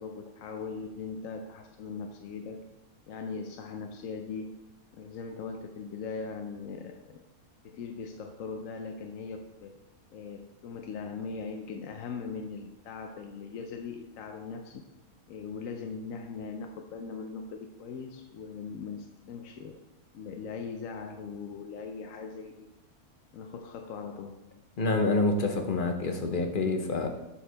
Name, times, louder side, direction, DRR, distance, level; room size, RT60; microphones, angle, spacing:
voice 1, 0.0-2.6 3.1-4.6 4.9-7.2 7.6-9.8 10.1-14.8 15.3-19.8 20.1-22.7 23.3-24.4, left 5 dB, 70° left, 4 dB, 1.0 m, -40 dB
voice 2, 24.8-27.1, left 3 dB, 45° left, 5 dB, 0.8 m, -27 dB
12.5 x 4.7 x 3.4 m, 1.0 s
omnidirectional pair, 1.5 m